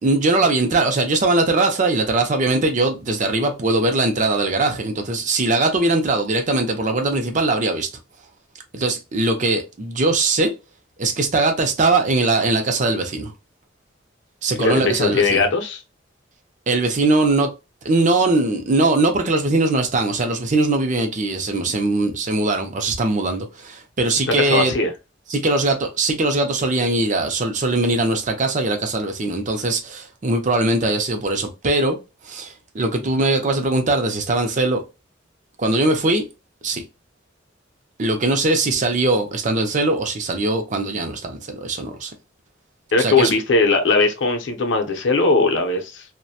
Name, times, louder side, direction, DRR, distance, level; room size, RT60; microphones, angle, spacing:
voice 1, 0.0-7.9 8.7-10.5 11.0-13.3 14.4-15.4 16.7-17.5 17.8-24.7 25.3-32.0 32.2-34.8 35.6-36.2 36.6-36.8 38.0-42.1 43.0-43.3, right 2 dB, 40° right, 0.5 m, -20 dB
voice 2, 14.6-15.8 24.3-24.9 42.9-46.0, left 3 dB, 70° left, 0.6 m, -19 dB
2.7 x 2.1 x 2.3 m
head